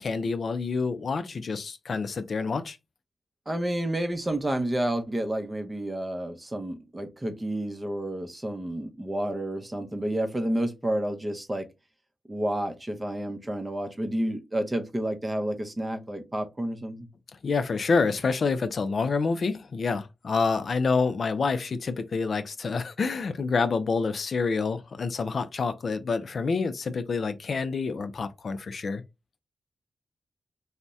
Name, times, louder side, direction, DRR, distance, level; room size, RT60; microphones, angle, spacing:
voice 1, 0.0-2.8 17.4-29.0, left 4 dB, 60° left, 0.3 m, -27 dB
voice 2, 3.5-11.7 12.3-17.1, right 1 dB, 20° right, 0.6 m, -30 dB
2.6 x 2.1 x 3.3 m
cardioid pair, 70°, 0 cm